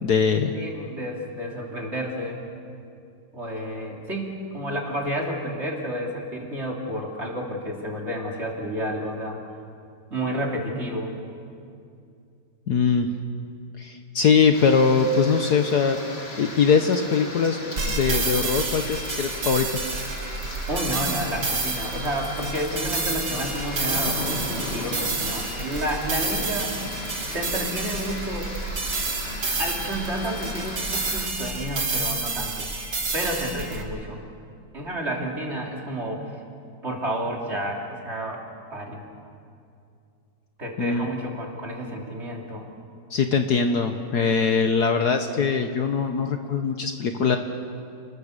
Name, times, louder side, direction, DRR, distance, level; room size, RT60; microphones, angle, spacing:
voice 1, 0.0-0.5 12.7-13.1 13.8-16.0 16.4-17.6 17.9-19.7 40.8-41.1 43.1-47.4, left 5 dB, 60° left, 6 dB, 1.4 m, -21 dB
voice 2, 0.5-2.4 3.3-9.4 10.1-11.1 20.7-26.7 27.3-28.5 29.6-32.7 33.1-34.2 34.7-36.4 36.8-38.4 38.7-39.0 40.6-42.7, equal, 30° right, -1 dB, 3.4 m, -30 dB
sound 1, 14.5-31.3, left 1 dB, 30° left, 2.6 m, -36 dB
sound 2, 17.8-33.8, right 3 dB, 60° right, 2.8 m, -29 dB
29.5 x 21.0 x 6.7 m, 2.4 s
omnidirectional pair, 2.2 m